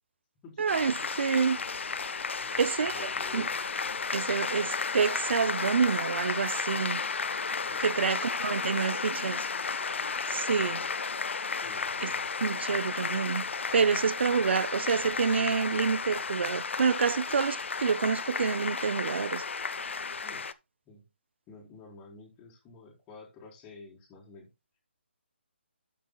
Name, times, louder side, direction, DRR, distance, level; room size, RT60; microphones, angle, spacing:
voice 1, 0.6-1.6 2.6-3.5 4.1-7.0 7.8-9.5 10.3-10.8 12.0-12.1 12.4-13.5 13.7-19.4, right 5 dB, 65° right, 0.6 m, -28 dB
sound 1, 0.7-20.5, left 5 dB, 75° left, 0.8 m, -33 dB
voice 2, 2.4-3.5 7.6-8.1 10.6-10.9 11.6-12.2 20.2-20.5 20.9-21.0 21.5-24.5, left 3 dB, 15° left, 4.0 m, -51 dB
12.5 x 8.3 x 2.3 m
hypercardioid pair, 160°, 7 cm